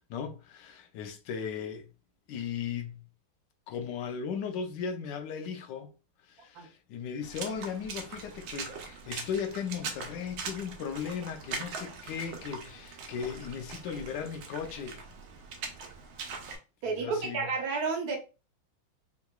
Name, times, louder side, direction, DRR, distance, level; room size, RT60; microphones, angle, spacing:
voice 1, 0.1-1.9 2.3-3.1 3.7-5.9 6.3-15.0 16.9-17.5, left 7 dB, 70° left, 1.2 m, -37 dB
Water / Splash splatter, 7.2-16.6, right 5 dB, 80° right, 1.5 m, -42 dB
voice 2, 16.8-18.2, right 4 dB, 60° right, 1.2 m, -31 dB
3.7 x 2.9 x 2.2 m
omnidirectional pair, 2.2 m